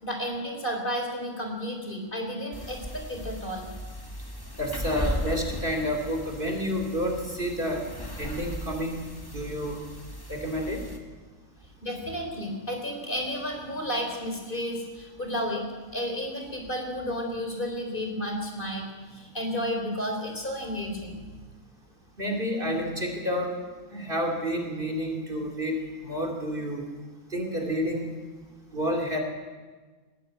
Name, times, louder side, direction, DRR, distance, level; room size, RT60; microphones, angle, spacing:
voice 1, 0.0-3.7 9.7-9.8 11.8-21.3, equal, 40° left, 2 dB, 4.0 m, -32 dB
sound 1, 2.5-11.0, equal, 15° left, 2.0 m, -37 dB
voice 2, 4.6-7.9 8.2-9.0 9.3-9.8 10.3-10.8 22.2-23.5 23.9-25.7 26.0-26.9 27.3-28.1 28.7-29.2, equal, 40° right, 2 dB, 3.1 m, -29 dB
19.5 x 15.5 x 9.0 m, 1.4 s
omnidirectional pair, 1.4 m